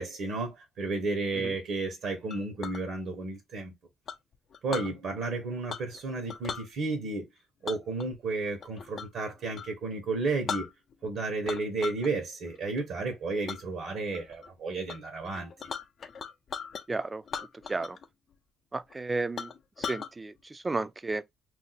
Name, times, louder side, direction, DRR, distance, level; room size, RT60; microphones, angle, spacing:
voice 1, 0.0-3.7 4.6-7.3 7.6-10.7 11.0-15.5, right 3 dB, 75° right, 1.0 m, -32 dB
Chink clink, 2.3-2.8 4.1-4.9 5.7-6.0 6.3-6.7 7.7-9.2 9.5-9.7 10.1-10.2 10.5-11.1 11.4-12.1 12.5-12.8 13.5-13.6 14.1-14.5 14.9-15.0 15.2-16.8 17.3-18.1 18.3-18.4 18.9-19.0 19.4-20.1, left 6 dB, 55° left, 0.5 m, -38 dB
voice 2, 16.9-17.2 17.7-18.0 18.7-19.5 19.8-21.2, right 3 dB, 20° right, 0.3 m, -33 dB
2.6 x 2.1 x 3.9 m
cardioid pair, 90°, 0 cm